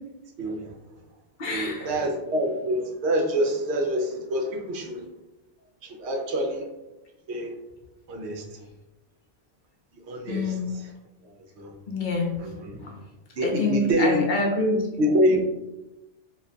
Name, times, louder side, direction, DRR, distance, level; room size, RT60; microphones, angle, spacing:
voice 1, 0.4-0.7 1.5-5.0 5.8-6.7 7.3-7.5 8.1-8.4 10.1-10.5 11.6-11.7 12.4-12.8 13.4-14.2 15.0-15.4, equal, 70° right, 2 dB, 0.9 m, -26 dB
voice 2, 1.4-2.0 10.3-10.7 11.9-12.3 12.8-13.0 13.4-15.4, left 2 dB, 50° left, -1 dB, 0.7 m, -27 dB
2.5 x 2.2 x 3.7 m, 1.0 s
omnidirectional pair, 1.2 m